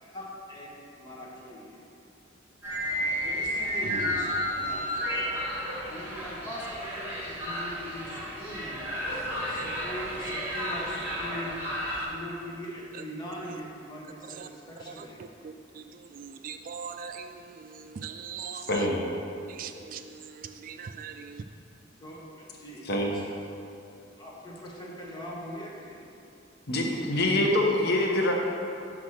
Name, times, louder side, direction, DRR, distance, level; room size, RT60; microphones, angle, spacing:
voice 1, 1.0-1.6 3.2-4.9 5.2-5.4 5.9-7.2 7.4-8.1 8.4-8.9 9.8-10.9 11.2-11.5 12.1-14.0 14.8-15.2 22.0-22.2 22.6-23.2 24.2-26.0, equal, 25° left, 1.4 m, -41 dB
sound 1, 2.6-12.0, equal, 10° right, 1.9 m, -32 dB
voice 2, 15.4-18.7 19.5-21.4, right 7 dB, 45° right, 0.3 m, -41 dB
voice 3, 18.7-19.0 22.8-23.1 26.7-28.3, left 1 dB, 60° left, 0.9 m, -25 dB
5.9 x 5.1 x 6.4 m
head